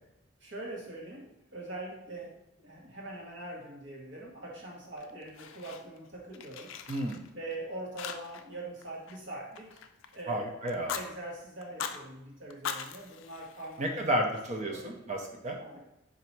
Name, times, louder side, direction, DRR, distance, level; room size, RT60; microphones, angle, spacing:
voice 1, 0.4-2.3 2.6-6.7 7.3-9.8 10.1-10.5 10.9-14.3 14.6-15.0 15.6-15.8, right 2 dB, 65° right, -3 dB, 1.2 m, -43 dB
Fire, 5.0-6.1 6.3-7.6 8.0-8.5 8.8-10.2 10.7-11.1 11.6-12.0 12.5-14.1, left 7 dB, 80° left, 0.4 m, -40 dB
voice 2, 6.9-7.2 10.3-10.9 13.8-15.6, right 1 dB, 35° right, 3 dB, 0.5 m, -32 dB
4.1 x 2.7 x 4.5 m, 0.85 s
head